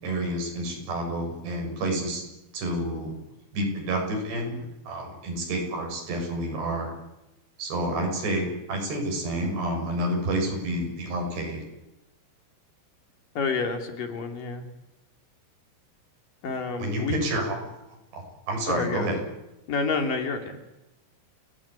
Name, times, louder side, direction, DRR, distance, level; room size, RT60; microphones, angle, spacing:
voice 1, 0.0-2.2 2.5-3.1 3.5-4.6 4.9-6.9 7.6-11.6 16.8-17.7 18.1-19.2, right 1 dB, 80° right, 2 dB, 9.1 m, -29 dB
voice 2, 13.4-14.6 16.4-17.2 18.7-19.2 19.7-20.6, left 4 dB, 55° left, 6 dB, 4.3 m, -29 dB
29.5 x 18.0 x 9.9 m, 0.94 s
omnidirectional pair, 4.8 m